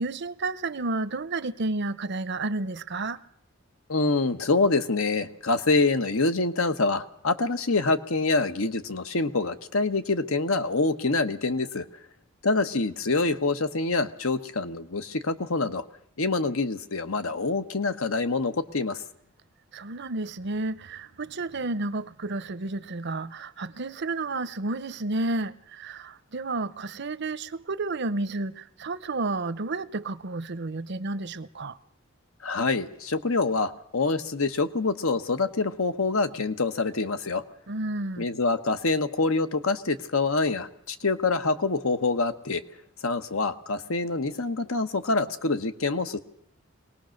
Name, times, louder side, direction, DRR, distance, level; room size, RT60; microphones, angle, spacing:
voice 1, 0.0-3.2 19.7-31.8 37.7-38.3, right 2 dB, 55° right, 0.7 m, -31 dB
voice 2, 3.9-11.8 12.4-15.8 16.2-19.0 32.4-37.4 38.2-42.6 43.0-46.2, left 3 dB, 80° left, 1.1 m, -26 dB
23.5 x 19.0 x 6.5 m
head